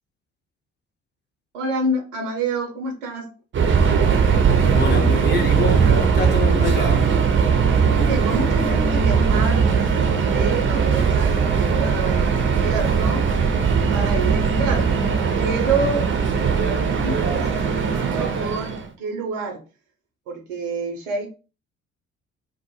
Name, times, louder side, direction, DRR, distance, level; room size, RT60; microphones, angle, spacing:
voice 1, 1.5-3.3 7.8-13.3 13.9-14.9 15.3-16.1 16.7-19.6 20.3-21.3, right 3 dB, 75° right, 0.7 m, -28 dB
Subway metro underground, 3.5-18.9, right 6 dB, 30° right, 0.5 m, -19 dB
voice 2, 4.7-7.1, left 4 dB, 25° left, 0.8 m, -26 dB
2.2 x 2.1 x 2.9 m
figure-of-eight pair, 45°, 39 cm